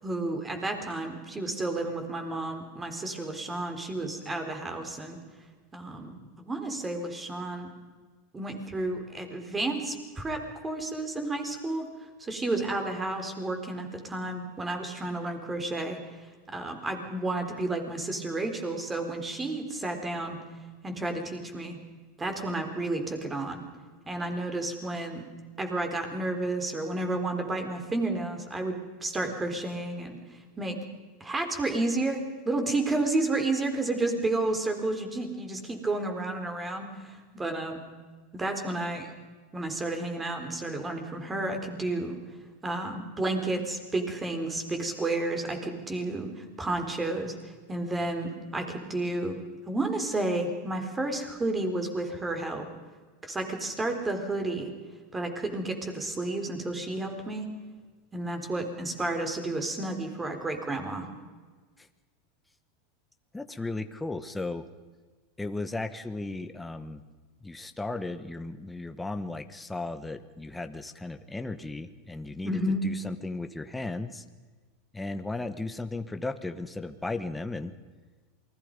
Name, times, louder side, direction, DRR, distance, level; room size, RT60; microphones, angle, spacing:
voice 1, 0.0-5.2 5.7-6.2 6.5-7.7 8.3-11.9 12.2-16.0 16.5-20.4 20.8-21.8 22.2-23.6 24.1-25.3 25.6-30.1 30.6-30.8 31.2-37.8 38.3-39.1 39.5-42.2 42.6-49.4 49.7-52.7 53.2-54.7 55.1-57.5 58.1-61.1 72.4-72.8, right 2 dB, 15° right, 5 dB, 4.1 m, -31 dB
voice 2, 63.3-64.7 65.4-67.0 67.4-74.2 74.9-77.7, left 2 dB, 10° left, 9 dB, 1.2 m, -35 dB
28.5 x 21.0 x 5.4 m, 1.4 s
supercardioid pair, 120°, 0 cm